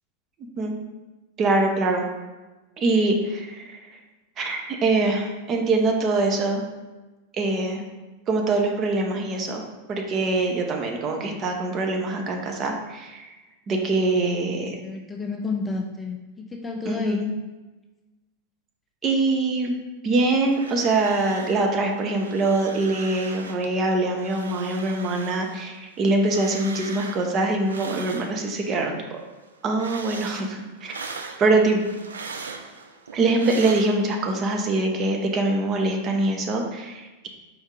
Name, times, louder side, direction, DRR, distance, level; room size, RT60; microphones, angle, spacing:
voice 1, 1.4-2.1 2.8-3.8 4.4-6.6 7.4-7.8 8.3-9.6 9.9-13.3 13.7-14.8 16.9-17.3 19.0-19.8 20.0-29.2 29.6-31.0 31.4-31.8 33.1-37.3, right 2 dB, 30° right, 2 dB, 0.6 m, -23 dB
voice 2, 14.6-16.2 16.5-17.2, left 3 dB, 15° left, 2 dB, 0.4 m, -30 dB
sound 1, 20.3-21.7 21.9-23.7 24.1-28.8 29.1-34.3, right 4 dB, 70° right, 0.3 m, -40 dB
4.5 x 2.6 x 3.7 m, 1.2 s
figure-of-eight pair, 90°, 0 cm